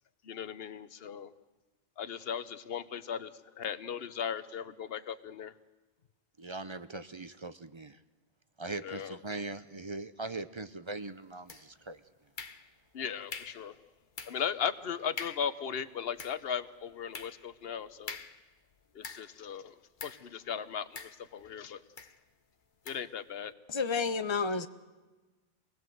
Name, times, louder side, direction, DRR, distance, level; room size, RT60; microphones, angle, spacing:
voice 1, 0.2-1.3 2.0-5.5 8.8-9.2 12.9-13.8 14.2-18.2 18.9-19.8 20.0-21.8 22.9-23.5, left 7 dB, 65° left, 1.1 m, -37 dB
voice 2, 6.4-8.0 8.6-12.0, right 2 dB, 30° right, 0.7 m, -40 dB
sound 1, 11.5-11.9 12.4-12.9 13.3-13.7 14.2-14.5 14.8-14.9 15.2-15.6 16.0-19.5 20.0-20.3 21.0-21.5 22.0-22.2 22.9-23.1, left 5 dB, 50° left, 1.2 m, -45 dB
voice 3, 23.7-24.7, left 4 dB, 30° left, 0.9 m, -30 dB
26.0 x 19.5 x 7.9 m
omnidirectional pair, 1.1 m